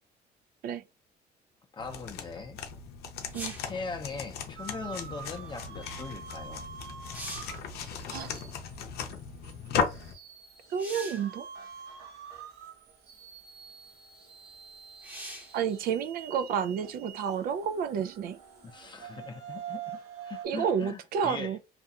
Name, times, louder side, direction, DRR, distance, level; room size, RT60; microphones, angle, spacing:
voice 1, 1.7-2.6 3.6-6.7 18.6-20.0 20.2-21.6, left 4 dB, 25° left, 0.6 m, -40 dB
sound 1, 1.8-10.1, left 6 dB, 70° left, 0.6 m, -37 dB
sound 2, 3.3-3.8 6.4-6.5 6.9-7.6 10.8-11.3 12.3-12.4 15.0-15.6 19.2-19.3, right 1 dB, 10° right, 0.8 m, -42 dB
sound 3, 4.6-20.5, right 8 dB, 80° right, 0.9 m, -46 dB
voice 2, 10.7-11.5 15.5-18.4 20.4-21.6, right 7 dB, 60° right, 0.4 m, -30 dB
2.4 x 2.3 x 2.7 m
cardioid pair, 110°, 17 cm